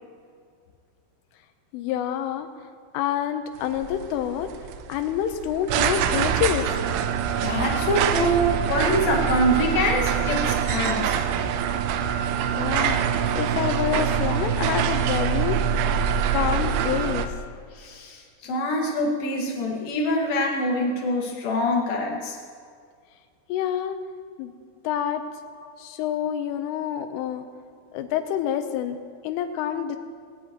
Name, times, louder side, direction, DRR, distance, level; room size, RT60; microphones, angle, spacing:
voice 1, 1.7-2.5 2.9-4.5 4.9-6.7 12.6-13.0 13.4-15.6 16.3-17.3 23.5-24.0 24.4-24.5 24.9-25.2 25.8-27.5 27.9-30.0, left 10 dB, 80° left, 8 dB, 3.4 m, -27 dB
sound 1, 3.6-17.3, right 8 dB, 85° right, 3.1 m, -24 dB
voice 2, 7.4-11.2 17.7-22.4 25.6-25.7, equal, 55° left, 0 dB, 3.2 m, -25 dB
21.0 x 18.0 x 3.1 m, 2.2 s
omnidirectional pair, 5.8 m